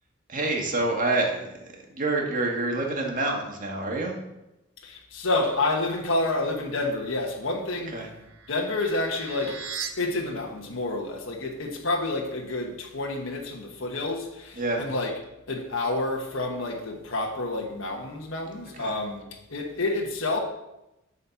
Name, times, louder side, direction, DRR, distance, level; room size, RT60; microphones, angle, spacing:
voice 1, 0.3-4.2 7.9-8.1 14.5-14.9 18.8-19.0, right 2 dB, 40° right, 1.6 m, -27 dB
voice 2, 4.8-8.1 8.5-9.7 10.0-15.1 15.5-20.4, left 2 dB, 75° left, 1.3 m, -29 dB
sound 1, 7.6-9.9, right 7 dB, 90° right, 1.0 m, -39 dB
9.8 x 4.3 x 7.0 m
head